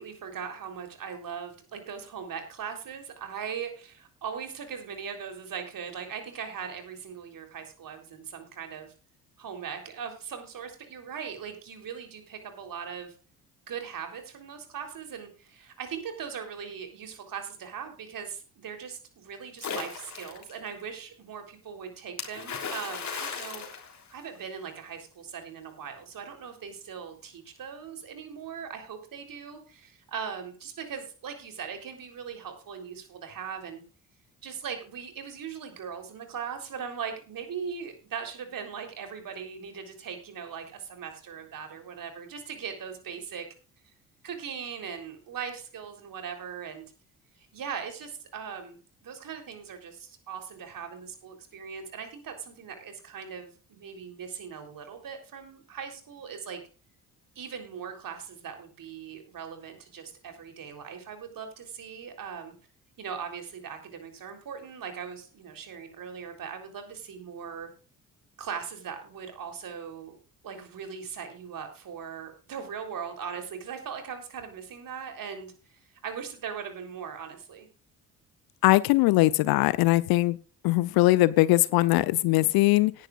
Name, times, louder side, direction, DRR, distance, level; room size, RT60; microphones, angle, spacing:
voice 1, 0.0-8.9 9.4-13.2 13.7-23.7 24.1-33.8 34.4-43.5 44.2-46.9 47.4-48.8 49.0-56.6 57.4-62.5 63.0-67.7 68.4-70.2 70.4-77.7, right 7 dB, 45° right, 6 dB, 3.7 m, -39 dB
Splash splatter, 19.6-20.5 22.2-24.6, left 5 dB, 40° left, 3.4 m, -36 dB
voice 2, 78.6-80.4 80.6-82.9, left 19 dB, 55° left, 19 dB, 0.7 m, -21 dB
18.0 x 10.0 x 2.5 m, 0.37 s
figure-of-eight pair, 45°, 45 cm